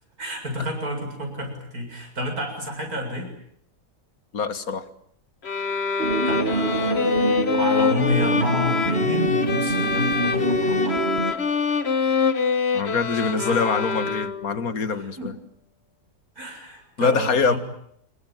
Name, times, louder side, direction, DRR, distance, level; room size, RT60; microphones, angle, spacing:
voice 1, 0.2-3.3 6.3-11.0 13.2-13.9 14.9-15.3 16.4-17.6, equal, 65° right, 4 dB, 7.9 m, -29 dB
voice 2, 4.3-4.9 12.7-15.3 17.0-17.5, left 5 dB, 60° left, 12 dB, 2.1 m, -24 dB
sound 1, 5.4-14.6, left 5 dB, 40° left, 1.6 m, -25 dB
sound 2, 6.0-11.3, right 2 dB, 35° right, 2.1 m, -26 dB
27.0 x 22.5 x 9.1 m, 0.71 s
omnidirectional pair, 1.7 m